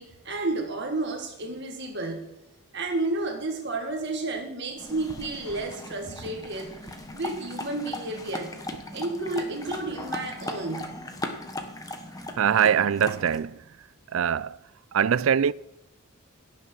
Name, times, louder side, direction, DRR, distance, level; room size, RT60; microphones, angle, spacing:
voice 1, 0.0-2.3 2.7-8.5 8.9-11.0, right 2 dB, 55° right, 1.9 m, -31 dB
sound 1, 4.8-13.4, left 2 dB, 15° left, 1.2 m, -38 dB
voice 2, 12.4-13.6 14.1-14.6 14.9-15.5, right 8 dB, 75° right, 0.4 m, -22 dB
16.5 x 7.0 x 6.1 m
head